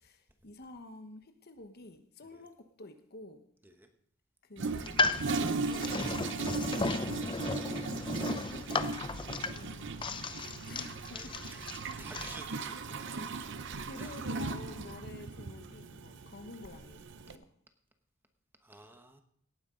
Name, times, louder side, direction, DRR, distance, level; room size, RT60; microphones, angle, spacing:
voice 1, 0.0-3.4 4.4-5.1 5.6-7.7 9.5-11.2 13.8-17.5, left 2 dB, 50° left, 8 dB, 1.2 m, -50 dB
Toilet flush, 4.6-17.4, right 3 dB, 60° right, 0.7 m, -38 dB
sound 1, 4.7-12.4, left 3 dB, 25° left, 0.5 m, -35 dB
voice 2, 11.1-11.6 12.0-13.7 14.0-14.2 18.6-19.2, right 2 dB, 10° right, 6 dB, 1.1 m, -52 dB
17.5 x 9.6 x 3.8 m, 0.62 s
head